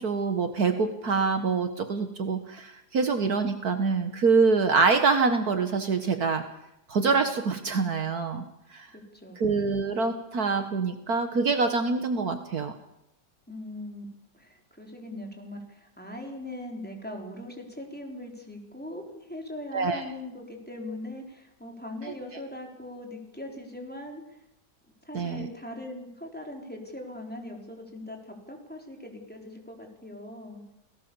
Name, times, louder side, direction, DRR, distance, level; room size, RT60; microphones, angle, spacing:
voice 1, 0.0-6.5 6.9-8.4 8.7-8.9 9.4-12.7 19.7-20.0 22.0-22.1 25.1-25.5, right 4 dB, 60° right, 8 dB, 1.9 m, -25 dB
voice 2, 8.9-9.7 13.5-14.1 14.3-24.4 25.0-30.6, left 1 dB, 5° left, 1 dB, 4.1 m, -40 dB
28.5 x 18.0 x 7.1 m, 0.84 s
omnidirectional pair, 1.8 m